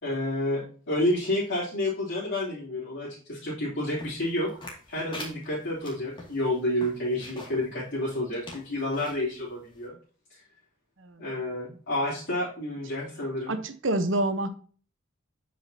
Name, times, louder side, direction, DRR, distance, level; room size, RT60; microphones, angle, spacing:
voice 1, 0.0-4.5 4.9-10.0 11.2-13.6, left 1 dB, 60° left, -9 dB, 3.3 m, -30 dB
sound 1, 4.0-7.7 8.1-8.2 8.4-9.2 9.8-9.9, left 2 dB, 25° left, 2.3 m, -43 dB
voice 2, 13.5-14.5, right 1 dB, 65° right, 10 dB, 1.0 m, -27 dB
9.0 x 5.2 x 2.8 m, 0.42 s
head